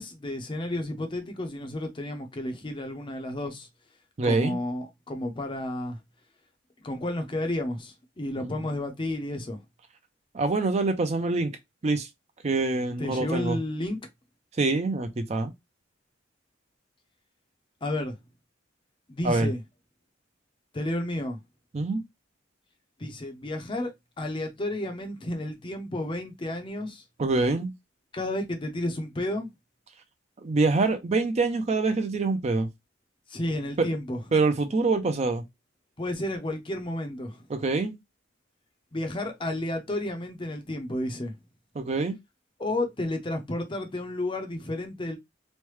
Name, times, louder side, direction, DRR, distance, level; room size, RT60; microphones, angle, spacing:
voice 1, 0.0-3.7 4.2-6.0 6.8-9.6 13.0-14.0 17.8-18.1 19.1-19.6 20.7-21.4 23.0-23.9 24.2-27.0 28.1-29.5 33.3-34.2 36.0-37.5 38.9-41.3 42.6-45.2, left 1 dB, 25° left, 0.6 m, -31 dB
voice 2, 4.2-4.6 8.4-8.6 10.3-11.5 11.8-12.1 12.4-13.6 14.6-15.5 19.2-19.5 21.7-22.0 27.2-27.7 30.4-32.7 33.8-33.9 34.3-35.4 37.5-37.9 41.8-42.2, right 3 dB, 35° right, 0.4 m, -25 dB
3.1 x 2.1 x 3.1 m
head